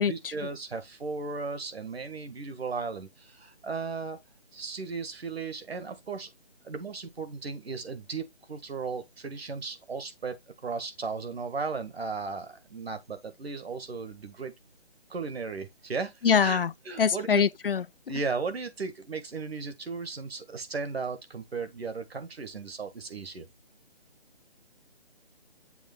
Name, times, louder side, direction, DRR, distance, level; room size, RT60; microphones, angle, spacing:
voice 1, 0.0-4.2 4.5-6.3 6.6-14.5 15.1-17.5 18.1-23.4, right 4 dB, 70° right, 1.7 m, -36 dB
voice 2, 16.2-16.7 17.0-17.8, left 7 dB, 60° left, 0.4 m, -23 dB
7.1 x 3.1 x 5.2 m
hypercardioid pair, 175°, 32 cm